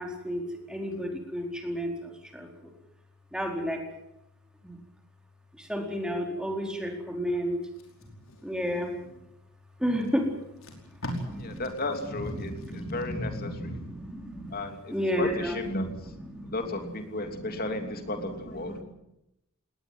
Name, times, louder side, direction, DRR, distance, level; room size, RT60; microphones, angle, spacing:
voice 1, 0.0-2.7 3.3-3.9 4.6-4.8 5.5-7.7 8.0-8.1 8.4-8.9 9.8-10.5 10.9-11.7 12.3-14.6 14.9-16.9 17.2-18.8, equal, 5° right, 2 dB, 4.5 m, -33 dB
Packing tape duct tape, 7.6-9.3 10.0-10.1 10.4-13.4 13.8-14.0, equal, 75° left, 5.1 m, -42 dB
voice 2, 11.4-13.8 14.5-18.8, left 2 dB, 45° left, 5 dB, 3.2 m, -34 dB
20.0 x 19.0 x 9.4 m, 0.88 s
head